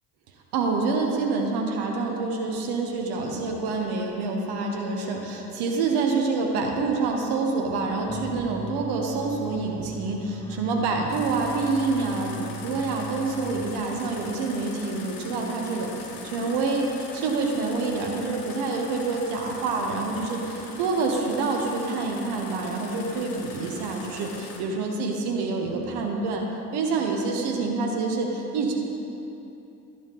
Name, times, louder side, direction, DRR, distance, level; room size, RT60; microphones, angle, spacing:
voice 1, 0.5-26.4 26.7-28.7, right 3 dB, 60° right, 1 dB, 1.0 m, -27 dB
sound 1, 8.1-14.2, right 3 dB, 10° left, 0.7 m, -40 dB
sound 2, 11.1-24.6, left 3 dB, 65° left, 1.0 m, -41 dB
11.0 x 4.0 x 5.0 m, 2.9 s
figure-of-eight pair, 50°, 44 cm